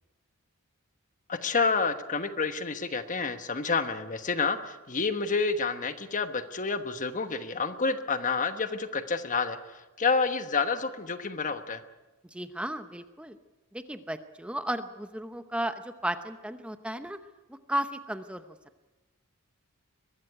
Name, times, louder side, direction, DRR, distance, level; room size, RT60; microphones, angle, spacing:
voice 1, 1.3-11.8, left 4 dB, 35° left, 9 dB, 1.2 m, -29 dB
voice 2, 12.3-13.4 13.7-17.2 17.5-18.4, right 1 dB, 5° right, 9 dB, 0.8 m, -34 dB
22.5 x 13.0 x 9.8 m, 1.1 s
head